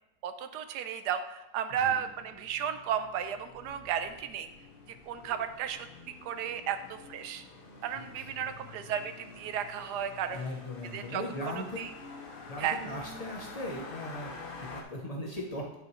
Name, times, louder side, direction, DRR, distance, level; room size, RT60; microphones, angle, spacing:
voice 1, 0.2-4.5 4.9-5.9 6.2-7.4 7.8-10.4 10.9-11.2 11.8-11.9 12.6-12.8, right 9 dB, 75° right, 9 dB, 1.1 m, -34 dB
sound 1, 1.8-14.8, left 3 dB, 45° left, 0.8 m, -48 dB
voice 2, 7.9-8.3 10.3-11.8 12.5-15.7, left 1 dB, 75° left, -1 dB, 0.3 m, -39 dB
9.3 x 5.8 x 3.1 m, 0.97 s
omnidirectional pair, 1.8 m